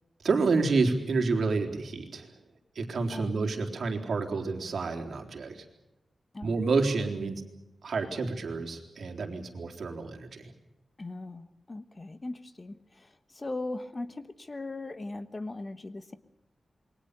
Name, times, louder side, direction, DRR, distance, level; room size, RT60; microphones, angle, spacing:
voice 1, 0.2-2.3 2.8-5.6 6.4-7.4 7.8-10.5, right 4 dB, 70° right, 3 dB, 4.0 m, -29 dB
voice 2, 11.0-16.2, left 2 dB, 30° left, 11 dB, 1.3 m, -39 dB
28.5 x 22.5 x 6.9 m, 0.91 s
wide cardioid pair, 120°, 0 cm